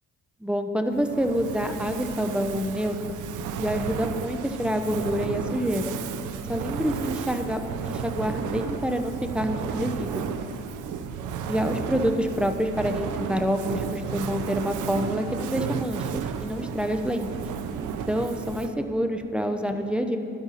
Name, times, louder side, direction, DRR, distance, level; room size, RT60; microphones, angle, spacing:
voice 1, 0.4-3.0 3.6-5.9 6.5-10.3 11.5-17.3 17.9-20.2, equal, 5° right, 6 dB, 1.0 m, -27 dB
Fire, 0.9-18.9, right 7 dB, 85° right, 0.8 m, -33 dB
16.0 x 11.5 x 4.2 m, 2.6 s
cardioid pair, 90°, 30 cm